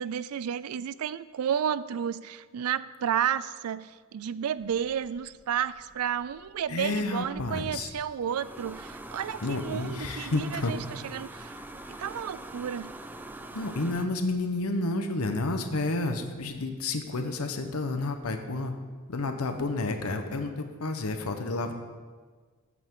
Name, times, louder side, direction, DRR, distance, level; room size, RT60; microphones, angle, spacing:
voice 1, 0.0-11.5 12.0-12.9, right 8 dB, 85° right, 17 dB, 0.4 m, -32 dB
sound 1, 4.6-14.0, right 1 dB, 10° right, 0.5 m, -45 dB
voice 2, 6.7-7.9 9.4-10.8 11.9-12.0 13.5-18.7 19.1-21.7, left 2 dB, 85° left, 7 dB, 0.9 m, -30 dB
13.5 x 8.5 x 3.7 m, 1.5 s
head